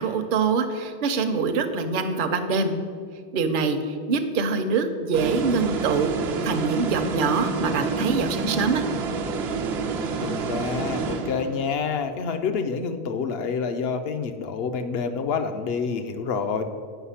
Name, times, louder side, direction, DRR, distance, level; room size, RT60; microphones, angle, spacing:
voice 1, 0.0-2.7 3.3-6.1 6.4-8.8, right 4 dB, 60° right, 7 dB, 0.8 m, -24 dB
sound 1, 5.1-11.7, right 4 dB, 85° right, 0.9 m, -28 dB
voice 2, 10.2-16.6, left 5 dB, 75° left, 8 dB, 0.9 m, -28 dB
8.0 x 5.4 x 5.7 m, 2.1 s
omnidirectional pair, 1.0 m